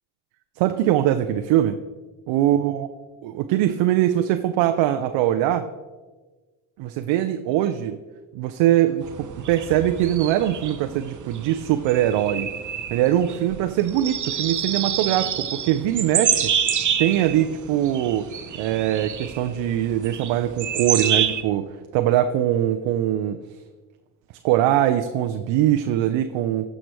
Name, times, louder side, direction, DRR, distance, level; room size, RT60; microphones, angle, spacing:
voice 1, 0.6-1.8 2.3-2.9 3.2-5.7 6.8-8.0 8.3-12.5 12.9-16.5 17.0-18.3 18.5-23.4 24.4-26.7, right 12 dB, 70° right, 8 dB, 0.6 m, -22 dB
sound 1, 9.0-21.4, right 8 dB, 40° right, 0.8 m, -28 dB
14.5 x 4.9 x 3.1 m, 1.3 s
hypercardioid pair, 50°, 47 cm